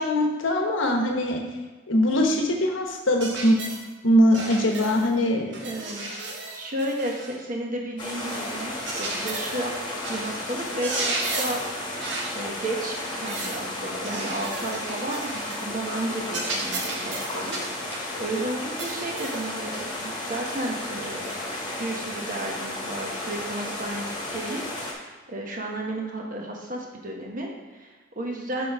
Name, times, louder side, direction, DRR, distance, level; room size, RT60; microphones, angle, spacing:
voice 1, 0.0-1.4 1.9-3.6 4.0-5.6, left 1 dB, 85° left, 2 dB, 1.1 m, -22 dB
sound 1, 3.2-3.8 4.3-5.1 5.5-7.4 8.2-9.7 10.0-10.4 10.7-11.7 12.0-12.4 13.0-13.6 14.0-15.6 15.9-16.0 16.3-18.1 18.8-19.4 20.0-20.2 21.3-21.4, right 3 dB, 65° right, 1.1 m, -34 dB
voice 2, 5.6-6.1 6.5-9.7 10.1-11.6 12.3-17.6 17.8-21.3 21.8-28.7, right 1 dB, 45° right, 0 dB, 1.2 m, -33 dB
sound 2, 8.0-24.9, left 1 dB, 25° left, 1.4 m, -33 dB
6.1 x 5.2 x 4.7 m, 1.3 s
head